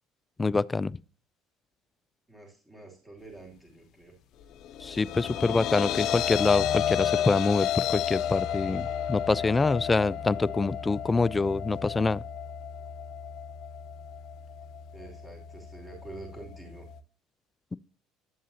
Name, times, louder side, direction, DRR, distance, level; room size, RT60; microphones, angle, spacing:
voice 1, 0.4-0.9 4.8-8.8 9.1-12.2, left 3 dB, 20° left, 0.3 m, -25 dB
voice 2, 2.3-4.1 9.6-10.1 14.9-16.9, right 2 dB, 15° right, 2.9 m, -47 dB
sound 1, 4.6-17.0, left 9 dB, 60° left, 0.7 m, -32 dB
10.5 x 7.4 x 2.8 m
hypercardioid pair, 80°, 0 cm